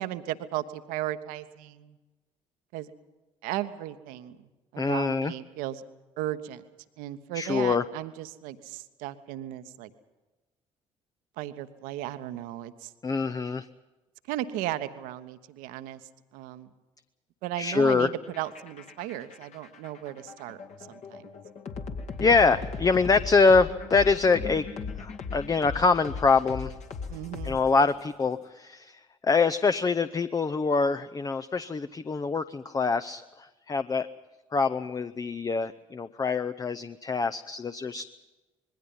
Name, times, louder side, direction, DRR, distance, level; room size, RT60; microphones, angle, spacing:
voice 1, 0.0-2.0 2.7-2.9 3.4-4.4 4.7-5.8 6.2-6.6 7.0-9.9 11.4-12.9 14.3-16.0 16.3-16.7 17.4-20.6 20.9-21.3 27.1-27.6, right 13 dB, 60° right, 11 dB, 1.1 m, -35 dB
voice 2, 4.8-5.3 7.3-7.8 13.0-13.6 17.6-18.1 22.2-24.6 25.0-26.7 27.4-29.0 29.2-34.1 34.5-38.0, left 4 dB, 25° left, 10 dB, 0.7 m, -24 dB
sound 1, 18.2-28.0, left 5 dB, 45° left, 2.1 m, -38 dB
26.0 x 21.5 x 5.5 m, 1.1 s
figure-of-eight pair, 50°, 16 cm